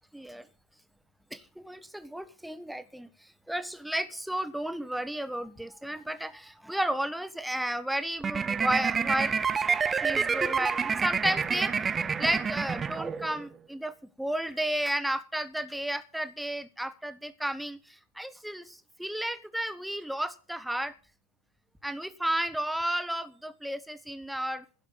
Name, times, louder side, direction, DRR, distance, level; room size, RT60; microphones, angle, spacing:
voice 1, 0.1-0.5 1.3-3.1 3.5-9.7 9.9-11.9 12.2-20.9 21.8-24.6, right 1 dB, ahead, 1.1 m, -33 dB
sound 1, 8.2-13.5, right 6 dB, 20° right, 0.7 m, -28 dB
15.5 x 6.8 x 7.2 m
figure-of-eight pair, 90°, 0 cm